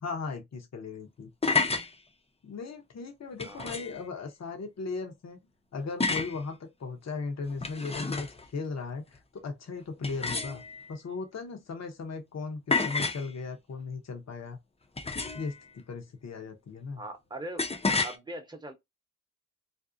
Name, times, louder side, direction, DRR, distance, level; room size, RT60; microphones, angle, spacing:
voice 1, 0.0-1.3 2.4-5.4 5.7-8.3 8.5-10.6 10.9-14.6 15.3-17.0, left 4 dB, 55° left, 0.7 m, -37 dB
sound 1, 1.2-1.9 3.4-4.0 6.0-6.4 7.5-8.5 10.0-10.9 12.7-13.3 15.0-15.5 17.6-18.2, left 4 dB, 20° left, 0.5 m, -30 dB
voice 2, 3.4-3.9 17.0-17.6 18.0-18.7, right 1 dB, 15° right, 0.8 m, -41 dB
2.5 x 2.0 x 2.4 m
cardioid pair, 70°, 31 cm